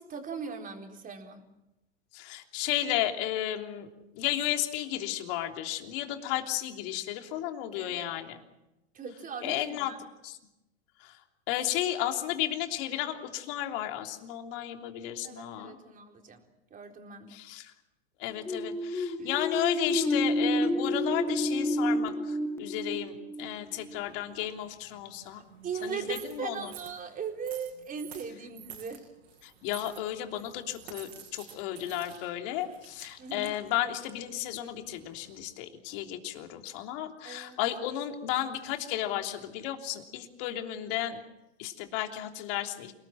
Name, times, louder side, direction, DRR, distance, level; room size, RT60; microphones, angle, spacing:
voice 1, 0.0-1.4 7.8-8.1 8.9-10.0 15.2-16.4 16.7-17.3 19.2-19.3 25.6-29.0 33.2-33.6 37.2-37.6, right 6 dB, 25° right, 3 dB, 4.2 m, -39 dB
voice 2, 2.1-3.9 4.1-8.4 9.4-9.9 10.2-10.4 11.0-11.1 11.5-15.8 17.3-17.7 18.2-25.4 25.8-26.7 29.4-41.2 41.6-42.9, left 12 dB, 55° left, 4 dB, 3.3 m, -33 dB
sound 1, 18.3-24.0, left 1 dB, 10° left, 1.5 m, -30 dB
sound 2, 23.4-35.5, right 9 dB, 80° right, 7.5 m, -51 dB
28.0 x 19.5 x 7.7 m, 0.93 s
hypercardioid pair, 105°, 32 cm